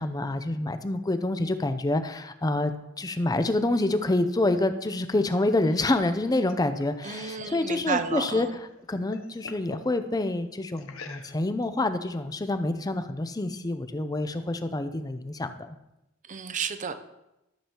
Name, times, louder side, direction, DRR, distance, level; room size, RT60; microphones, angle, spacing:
voice 1, 0.0-8.5 8.9-15.8, left 2 dB, 20° left, 9 dB, 0.5 m, -27 dB
sound 1, 5.5-8.5 8.8-9.9 10.8-11.6, left 4 dB, 80° left, 0.7 m, -47 dB
voice 2, 7.0-8.6 16.3-16.9, right 5 dB, 40° right, 10 dB, 0.6 m, -32 dB
13.0 x 7.2 x 2.9 m, 0.92 s
head